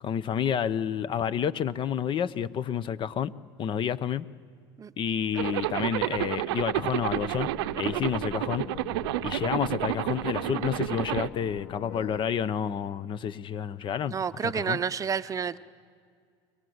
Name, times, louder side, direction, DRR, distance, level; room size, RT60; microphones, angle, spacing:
voice 1, 0.0-3.3 3.6-4.3 5.0-7.5 7.8-8.7 9.2-14.2 14.4-14.8, left 8 dB, 40° left, 18 dB, 0.8 m, -29 dB
Zipper (clothing), 5.4-11.3, right 17 dB, 85° right, 0.6 m, -30 dB
sound 1, 7.0-12.2, left 7 dB, 65° left, 2.3 m, -43 dB
voice 2, 14.1-15.6, right 6 dB, 25° right, 13 dB, 0.7 m, -30 dB
29.5 x 22.5 x 8.0 m, 2.1 s
supercardioid pair, 110°, 13 cm